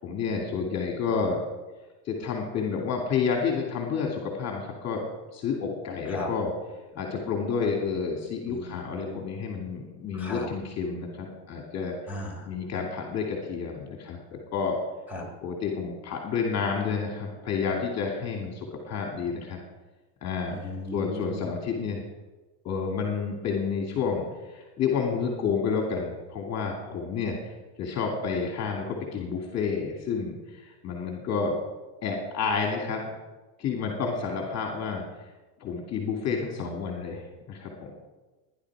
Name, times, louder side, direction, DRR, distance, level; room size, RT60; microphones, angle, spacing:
voice 1, 0.0-1.4 2.0-5.0 5.3-6.5 6.9-11.9 12.5-14.8 15.4-19.6 20.2-20.5 20.9-22.0 22.6-27.5 27.8-31.6 32.0-33.2 33.6-35.0 35.6-37.9, left 5 dB, 35° left, 1 dB, 2.6 m, -30 dB
voice 2, 8.5-9.2 10.1-10.5 12.1-12.5 15.1-15.2 20.5-21.4, left 1 dB, 5° right, 0 dB, 3.8 m, -36 dB
18.5 x 11.0 x 4.9 m, 1.2 s
supercardioid pair, 135°, 48 cm